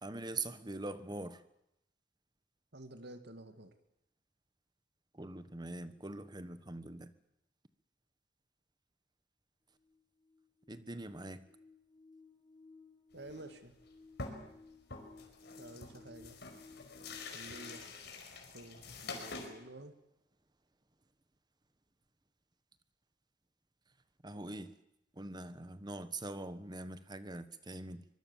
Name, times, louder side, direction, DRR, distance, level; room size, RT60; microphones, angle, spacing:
voice 1, 0.0-1.4 5.1-7.1 10.7-11.5 24.2-24.7 25.1-28.1, right 2 dB, 25° right, 13 dB, 1.3 m, -43 dB
voice 2, 2.7-3.7 13.1-13.7 15.6-16.4 17.3-17.8 18.5-19.9, right 1 dB, 65° right, 8 dB, 2.5 m, -51 dB
sound 1, 9.8-17.8, left 4 dB, 25° left, 1.8 m, -58 dB
sound 2, 13.2-13.5 13.8-13.9 14.2-14.6 14.9-19.5, left 3 dB, 65° left, 5.0 m, -46 dB
24.0 x 22.5 x 7.4 m, 0.84 s
head